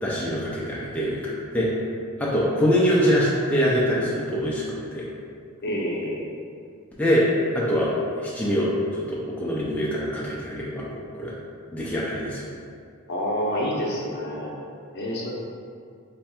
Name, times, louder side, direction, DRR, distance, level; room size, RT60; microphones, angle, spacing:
voice 1, 0.0-1.7 2.2-5.0 7.0-10.9 11.1-11.3 11.7-12.5, equal, 5° left, -7 dB, 0.4 m, -24 dB
voice 2, 5.6-6.3 13.1-14.6 14.9-15.3, equal, 55° left, -3 dB, 0.6 m, -28 dB
3.3 x 2.3 x 4.2 m, 2.2 s
head